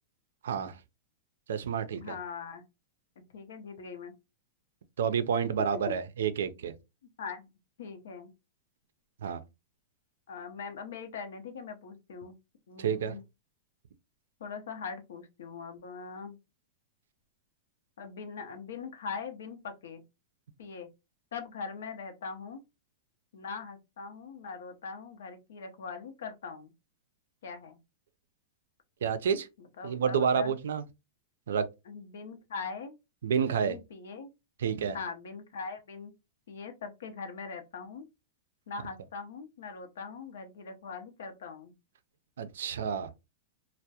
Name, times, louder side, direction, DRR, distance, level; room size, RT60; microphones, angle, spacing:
voice 1, 0.4-0.8 1.5-2.1 5.0-6.7 9.2-9.4 12.8-13.2 29.0-29.5 29.8-30.8 31.5-31.7 33.2-33.8 34.6-35.0 42.4-43.1, right 7 dB, 85° right, 0.3 m, -29 dB
voice 2, 2.0-2.6 3.2-4.1 7.2-7.5 7.8-8.3 10.3-12.3 12.7-13.2 14.4-16.4 18.0-20.0 20.6-20.9 21.3-22.6 23.3-26.7 27.4-27.8 29.6-30.5 31.9-33.0 33.5-34.3 34.9-36.1 36.5-38.1 38.7-41.7, left 5 dB, 80° left, 0.6 m, -41 dB
2.2 x 2.0 x 2.7 m
supercardioid pair, 145°, 0 cm